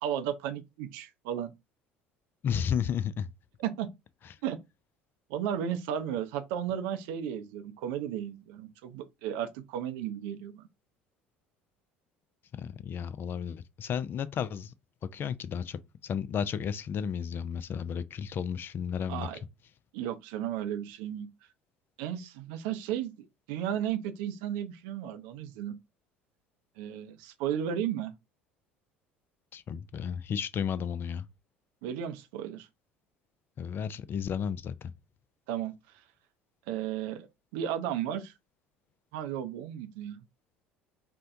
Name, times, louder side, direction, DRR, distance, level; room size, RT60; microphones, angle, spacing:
voice 1, 0.0-1.5 3.6-3.9 4.4-4.6 5.3-10.7 19.1-19.4 19.9-21.3 22.0-25.8 26.8-28.1 31.8-32.7 35.5-35.7 36.7-37.3 37.5-38.3 39.1-40.2, right 10 dB, 65° right, 0.5 m, -34 dB
voice 2, 2.4-3.3 12.5-14.7 15.1-19.3 29.5-31.3 33.6-34.9, left 7 dB, 40° left, 0.4 m, -33 dB
4.2 x 2.2 x 2.6 m
figure-of-eight pair, 65°, 6 cm